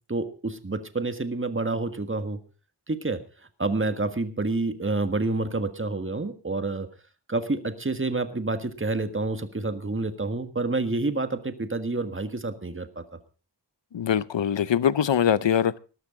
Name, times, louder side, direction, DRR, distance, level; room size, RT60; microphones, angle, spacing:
voice 1, 0.1-2.4 2.9-3.2 3.6-6.9 7.3-13.0, right 3 dB, 30° right, 1.6 m, -28 dB
voice 2, 13.9-15.8, left 8 dB, 85° left, 0.7 m, -23 dB
19.0 x 13.0 x 3.8 m
wide cardioid pair, 60°, 43 cm